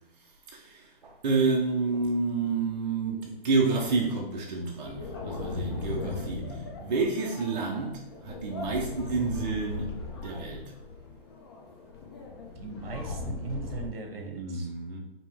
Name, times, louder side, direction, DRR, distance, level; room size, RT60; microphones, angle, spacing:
voice 1, 0.5-9.9 10.2-10.6 14.2-15.0, right 4 dB, 45° right, 0 dB, 0.6 m, -29 dB
sound 1, 4.8-13.9, left 3 dB, 25° left, 0.5 m, -38 dB
voice 2, 12.6-14.7, right 4 dB, 70° right, 4 dB, 1.1 m, -39 dB
5.1 x 2.9 x 3.4 m, 0.97 s
hypercardioid pair, 165°, 30 cm